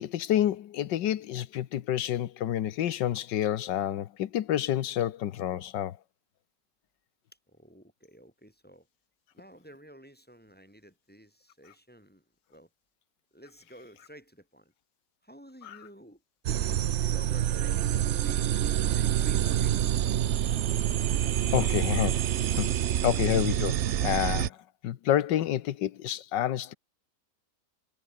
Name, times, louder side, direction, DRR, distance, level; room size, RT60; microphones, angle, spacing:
voice 1, 0.0-6.0 15.6-15.8 21.5-22.7 23.0-26.7, left 11 dB, 85° left, 1.6 m, -29 dB
voice 2, 7.5-8.9 9.3-12.7 13.3-14.7 15.2-19.9, equal, 5° left, 3.3 m, -52 dB
sound 1, 16.4-24.5, right 11 dB, 60° right, 0.7 m, -27 dB
omnidirectional pair, 1.9 m